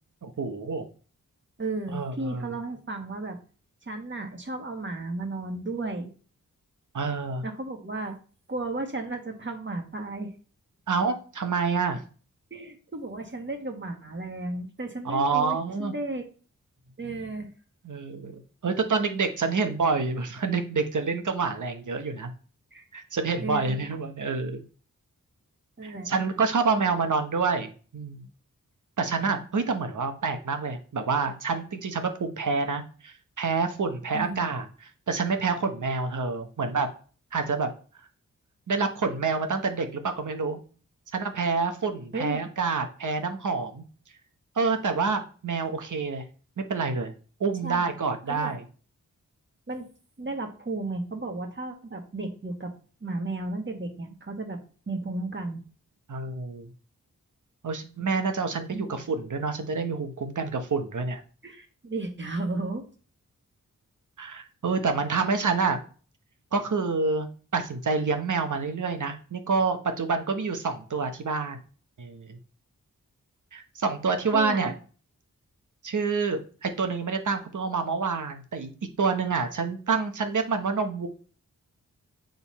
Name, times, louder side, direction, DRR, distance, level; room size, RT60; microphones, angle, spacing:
voice 1, 0.2-0.8 1.9-2.5 6.9-7.4 10.9-12.0 15.0-15.9 17.8-22.3 22.9-24.6 25.8-28.2 29.0-34.7 35.1-36.9 37.3-37.7 38.7-40.6 41.1-43.8 44.6-46.2 46.6-47.1 47.4-48.6 56.1-56.7 57.6-61.2 64.2-65.8 66.5-71.6 72.0-72.4 73.5-74.7 75.8-78.7 79.0-81.1, right 4 dB, 65° right, 6 dB, 1.1 m, -27 dB
voice 2, 1.6-3.4 3.8-6.1 7.4-8.2 8.5-10.3 12.5-16.2 17.0-17.5 22.7-22.8 23.4-23.8 25.8-26.1 34.1-34.4 42.1-42.4 47.6-47.9 48.3-48.5 49.7-49.9 50.2-52.7 53.0-54.6 54.9-55.6 58.7-58.9 61.4-62.8 74.3-74.7, right 2 dB, 35° right, 4 dB, 1.6 m, -34 dB
7.0 x 3.9 x 4.2 m, 0.39 s
cardioid pair, 50°, 33 cm